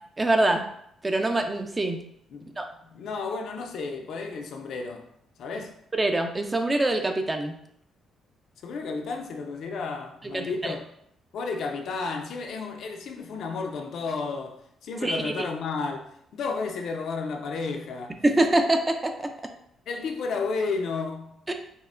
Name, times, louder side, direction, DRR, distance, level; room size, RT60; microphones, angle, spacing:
voice 1, 0.2-0.6 1.0-2.0 2.6-2.7 5.9-7.5 10.3-10.7 15.0-15.5 18.2-19.3 21.5-21.6, right 2 dB, 20° right, 0.4 m, -24 dB
voice 2, 2.9-5.1 5.4-5.7 8.6-10.9 11.3-18.2 19.9-21.5, left 4 dB, 70° left, 0.5 m, -32 dB
5.3 x 2.1 x 2.5 m
cardioid pair, 90°, 0 cm